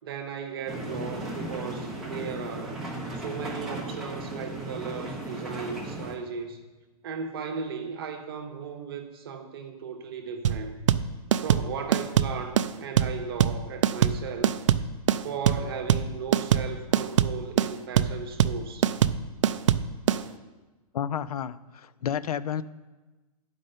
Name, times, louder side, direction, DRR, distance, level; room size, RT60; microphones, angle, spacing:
voice 1, 0.0-2.8 3.1-6.6 7.0-10.8 11.4-14.6 15.2-18.9, right 6 dB, 40° right, 5 dB, 0.9 m, -36 dB
sound 1, 0.7-6.1, right 1 dB, ahead, 0.7 m, -36 dB
sound 2, 10.4-20.2, right 9 dB, 55° right, 0.4 m, -23 dB
voice 2, 20.9-22.6, left 9 dB, 75° left, 16 dB, 0.5 m, -31 dB
9.9 x 5.3 x 6.5 m, 1.2 s
hypercardioid pair, 180°, 20 cm